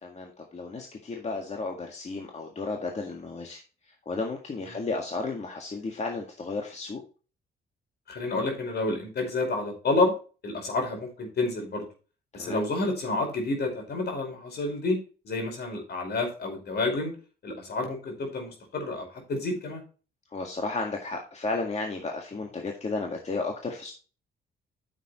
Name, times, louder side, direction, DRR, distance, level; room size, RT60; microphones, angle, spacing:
voice 1, 0.0-3.6 3.9-7.0 12.3-12.6 20.3-23.9, left 3 dB, 35° left, 2 dB, 1.9 m, -33 dB
voice 2, 8.1-10.1 10.4-11.9 12.3-15.0 15.2-17.1 17.4-19.8, left 2 dB, 55° left, 3 dB, 4.9 m, -29 dB
9.8 x 7.4 x 3.1 m, 0.36 s
cardioid pair, 90°, 20 cm